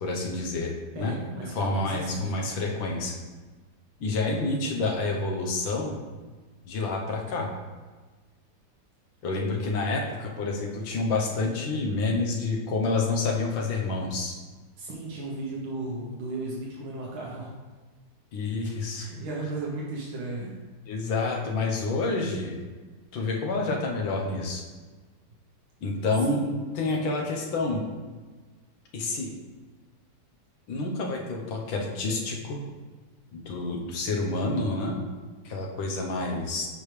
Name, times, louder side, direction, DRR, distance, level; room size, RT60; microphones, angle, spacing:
voice 1, 0.0-1.1 1.5-3.1 4.0-6.0 6.7-7.5 9.2-14.4 18.3-19.1 20.9-22.6 23.1-24.6 25.8-27.9 28.9-29.3 30.7-32.6 33.3-35.0 35.5-36.7, left 3 dB, 75° left, 0 dB, 1.7 m, -28 dB
voice 2, 1.0-2.3 14.8-17.5 18.9-20.5 26.3-26.6, right 2 dB, 80° right, -3 dB, 1.8 m, -35 dB
7.8 x 5.2 x 3.3 m, 1.3 s
omnidirectional pair, 2.2 m